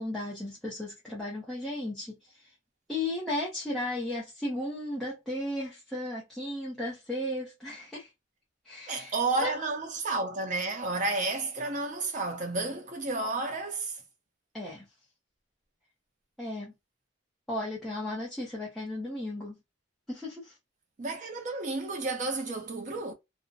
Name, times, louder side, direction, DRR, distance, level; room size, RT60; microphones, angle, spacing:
voice 1, 0.0-2.5 2.9-8.1 8.6-9.1 9.4-9.6 14.5-14.9 16.4-16.7 17.5-19.6 20.1-20.6, left 1 dB, ahead, 0.7 m, -35 dB
voice 2, 8.9-14.0 21.0-23.1, right 3 dB, 35° right, 0.5 m, -31 dB
2.5 x 2.1 x 2.3 m
head